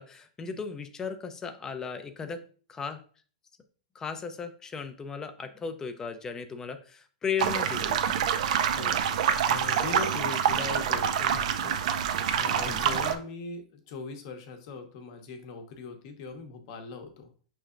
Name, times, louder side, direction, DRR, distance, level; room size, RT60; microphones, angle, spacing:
voice 1, 0.0-2.4 2.7-3.0 3.9-8.0 12.6-12.9, left 6 dB, 15° left, 9 dB, 0.4 m, -36 dB
sound 1, 7.4-13.2, right 8 dB, 65° right, 0.4 m, -26 dB
voice 2, 8.7-11.8 12.4-17.3, left 4 dB, 50° left, 6 dB, 0.9 m, -40 dB
5.4 x 3.2 x 2.5 m, 0.42 s
supercardioid pair, 145°, 4 cm